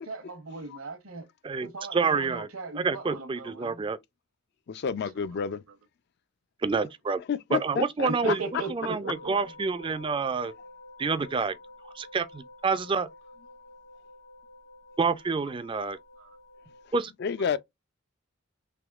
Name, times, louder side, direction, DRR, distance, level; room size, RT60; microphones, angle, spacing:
voice 1, 0.0-1.3 1.6-3.9 5.0-5.1 7.1-7.2 8.1-9.6 15.4-15.9 16.2-16.4 17.4-17.6, right 3 dB, 75° right, 0.9 m, -39 dB
voice 2, 1.4-2.5 2.8-4.0 6.6-7.2 7.5-8.4 8.7-10.5 11.0-11.6 12.0-13.1 15.0-16.0 16.9-17.1, right 4 dB, 25° right, 0.3 m, -28 dB
voice 3, 4.7-5.6 7.3-8.3 17.2-17.6, left 6 dB, 50° left, 0.4 m, -30 dB
sound 1, 9.0-16.9, left 2 dB, 80° left, 1.2 m, -50 dB
3.5 x 3.0 x 2.3 m
head